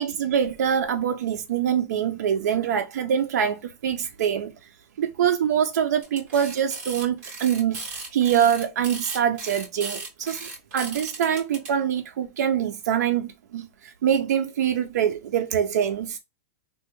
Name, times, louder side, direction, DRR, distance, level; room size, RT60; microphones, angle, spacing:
voice 1, 0.0-4.5 5.0-16.2, right 9 dB, 80° right, 0.4 m, -24 dB
sound 1, 6.0-11.7, right 3 dB, 40° right, 2.0 m, -36 dB
3.3 x 2.1 x 2.9 m
supercardioid pair, 175°, 9 cm